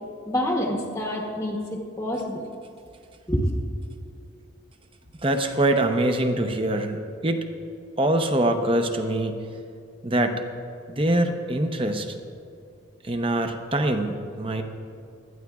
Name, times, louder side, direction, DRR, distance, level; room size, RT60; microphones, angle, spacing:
voice 1, 0.3-2.4 3.3-3.5, equal, 15° left, 0 dB, 1.0 m, -27 dB
voice 2, 5.2-7.4 8.0-9.4 10.0-10.4 10.9-12.1 13.1-14.6, right 1 dB, 25° right, 6 dB, 0.7 m, -24 dB
19.0 x 13.0 x 2.4 m, 2.5 s
head